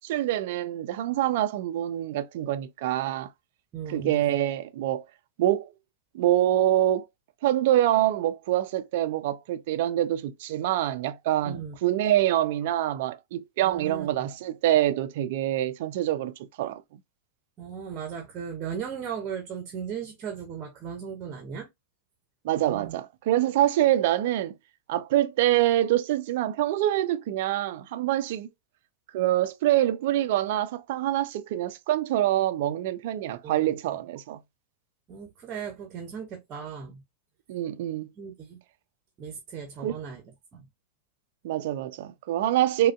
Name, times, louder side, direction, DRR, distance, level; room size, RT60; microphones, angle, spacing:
voice 1, 0.0-3.3 3.9-5.0 5.4-5.7 6.1-7.1 7.4-16.8 22.4-24.5 24.9-28.5 29.1-34.4 37.5-38.1 39.8-39.9 41.4-42.9, right 13 dB, 50° right, 0.4 m, -25 dB
voice 2, 3.7-4.2 11.4-11.8 13.6-14.3 17.6-21.7 22.5-23.0 33.4-34.0 35.1-37.0 38.2-38.6 39.2-40.2 40.5-40.6, right 7 dB, 30° right, 0.8 m, -37 dB
4.9 x 2.3 x 2.2 m
figure-of-eight pair, 90°, 0 cm